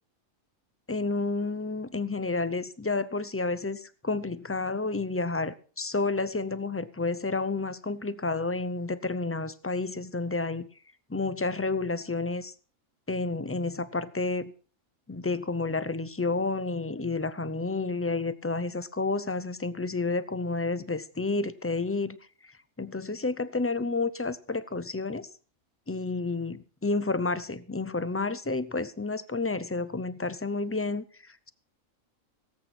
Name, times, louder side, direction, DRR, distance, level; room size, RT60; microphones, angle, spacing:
voice 1, 0.9-10.7 11.1-12.5 13.1-14.5 15.1-22.2 22.4-22.5 22.8-25.3 25.9-31.5, left 3 dB, 20° left, 0.3 m, -30 dB
18.0 x 8.5 x 5.9 m
omnidirectional pair, 1.4 m